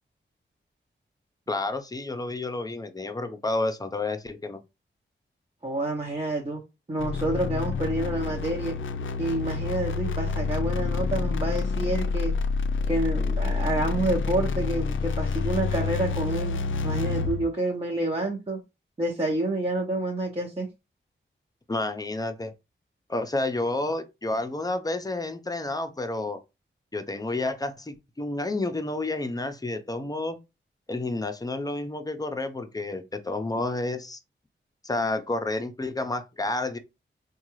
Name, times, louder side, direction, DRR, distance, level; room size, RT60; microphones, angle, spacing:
voice 1, 1.5-4.6 21.7-22.5 23.1-26.4 26.9-30.4 30.9-34.2 34.8-36.8, left 2 dB, 20° left, 0.6 m, -30 dB
voice 2, 5.6-6.6 6.9-8.8 9.2-12.3 12.9-18.6 19.0-20.7, right 2 dB, 30° right, 0.8 m, -28 dB
sound 1, 7.0-17.5, left 4 dB, 75° left, 0.4 m, -28 dB
3.7 x 2.3 x 3.0 m
cardioid pair, 60°, 20 cm